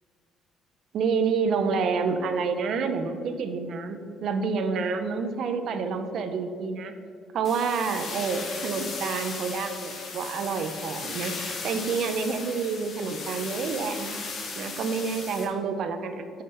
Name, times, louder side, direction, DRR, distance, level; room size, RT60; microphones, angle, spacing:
voice 1, 0.9-6.9 7.3-11.3 11.6-14.2 14.6-16.4, right 5 dB, 50° right, 8 dB, 0.7 m, -28 dB
sound 1, 7.4-15.5, left 4 dB, 35° left, 1.2 m, -36 dB
6.3 x 5.8 x 5.8 m, 2.3 s
cardioid pair, 170°, 0 cm